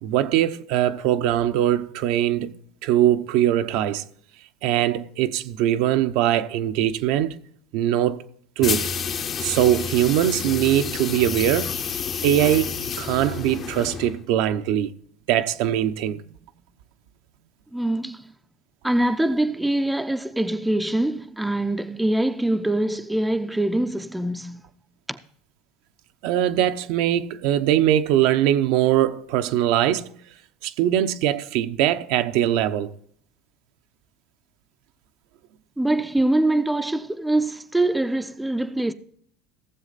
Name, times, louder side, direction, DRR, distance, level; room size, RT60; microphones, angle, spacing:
voice 1, 0.0-2.5 2.8-4.0 4.6-7.4 7.7-8.2 8.6-8.9 9.4-11.8 12.2-14.9 15.3-16.2 26.2-30.1 30.6-32.9, right 12 dB, 70° right, 0.8 m, -21 dB
sound 1, 8.6-14.2, left 6 dB, 35° left, 0.8 m, -29 dB
voice 2, 17.7-18.3 18.8-24.6 25.1-25.2 35.8-38.9, right 1 dB, 5° right, 0.6 m, -24 dB
16.0 x 7.4 x 4.1 m
supercardioid pair, 125°, 0 cm